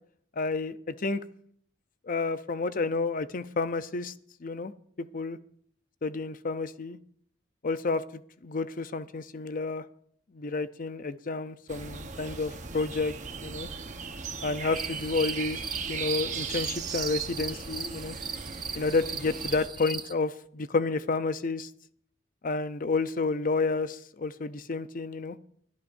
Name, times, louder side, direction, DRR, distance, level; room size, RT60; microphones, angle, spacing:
voice 1, 0.4-1.2 2.0-4.1 4.4-4.7 5.0-5.4 6.0-7.0 7.6-9.8 10.3-13.1 13.4-13.7 14.4-15.6 15.9-18.2 18.7-21.7 22.4-25.4, left 3 dB, 45° left, 12 dB, 0.6 m, -30 dB
sound 1, 11.7-19.7, right 5 dB, 40° right, 1.1 m, -37 dB
sound 2, 14.8-20.1, right 6 dB, 25° right, 0.6 m, -39 dB
22.0 x 11.5 x 2.6 m, 0.65 s
head